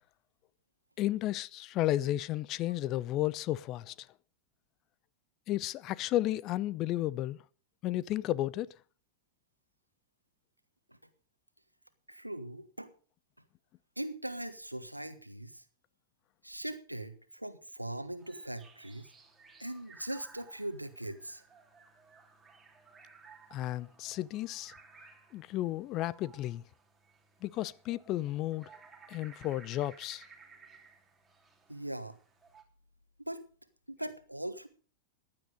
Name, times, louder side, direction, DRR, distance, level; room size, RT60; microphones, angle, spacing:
voice 1, 1.0-3.9 5.5-7.4 7.8-8.7 23.5-24.7 25.3-26.6 27.4-28.7 29.1-30.2, left 14 dB, 35° left, 0.5 m, -33 dB
voice 2, 12.1-12.9 14.0-15.6 16.4-19.1 19.6-21.4 31.7-32.1 33.3-33.4 33.9-34.7, right 1 dB, 90° right, 1.3 m, -40 dB
sound 1, 18.2-32.6, right 5 dB, 10° right, 3.1 m, -58 dB
15.5 x 10.5 x 5.2 m
figure-of-eight pair, 90°, 0 cm